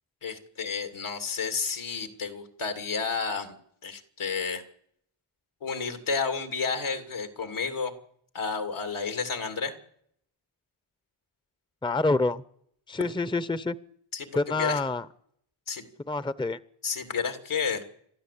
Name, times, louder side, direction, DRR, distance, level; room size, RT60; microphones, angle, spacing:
voice 1, 0.2-3.6 3.8-4.6 5.6-7.9 8.3-9.7 14.1-14.8 15.7-15.9 16.8-17.8, left 5 dB, 75° left, 7 dB, 2.9 m, -31 dB
voice 2, 11.8-12.4 12.9-13.8 14.3-15.0 16.1-16.6, left 3 dB, 10° left, 16 dB, 0.9 m, -27 dB
30.0 x 12.5 x 8.6 m, 0.71 s
cardioid pair, 50°, 49 cm